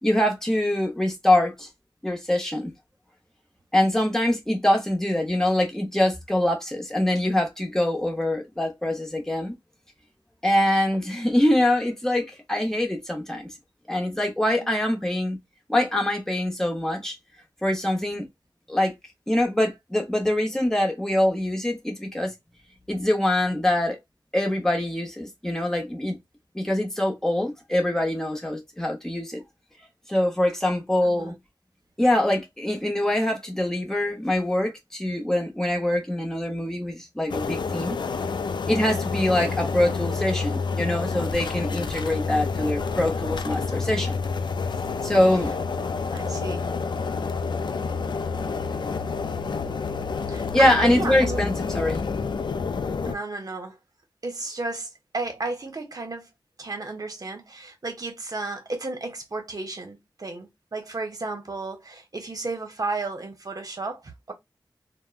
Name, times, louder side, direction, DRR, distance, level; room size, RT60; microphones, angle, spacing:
voice 1, 0.0-1.7 2.0-2.7 3.7-9.5 10.4-13.5 13.9-15.4 15.7-17.2 17.6-18.3 18.7-18.9 19.3-22.3 22.9-24.0 24.3-26.2 26.5-29.4 30.1-31.3 32.0-38.0 38.7-44.2 45.0-45.5 50.5-52.2, left 1 dB, 5° left, 0.9 m, -24 dB
voice 2, 31.0-31.4 46.1-46.7 50.3-51.5 53.0-53.8 54.2-56.3 56.6-64.3, right 3 dB, 50° right, 0.9 m, -33 dB
sound 1, 37.3-53.2, left 5 dB, 70° left, 0.3 m, -29 dB
3.4 x 2.1 x 2.4 m
wide cardioid pair, 75°, 8 cm